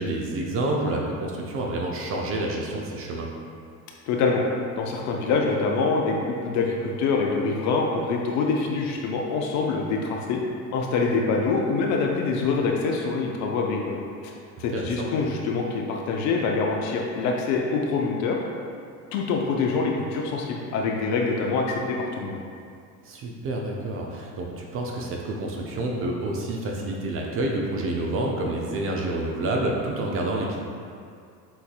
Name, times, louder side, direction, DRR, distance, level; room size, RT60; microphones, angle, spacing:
voice 1, 0.0-3.3 14.7-15.1 23.0-30.6, right 2 dB, 30° right, -1 dB, 0.5 m, -28 dB
voice 2, 4.1-4.4 4.8-6.2 6.4-10.4 10.7-14.3 14.6-18.4 19.1-22.4, left 4 dB, 40° left, 0 dB, 0.5 m, -25 dB
6.8 x 2.6 x 2.3 m, 2.3 s
hypercardioid pair, 75°, 48 cm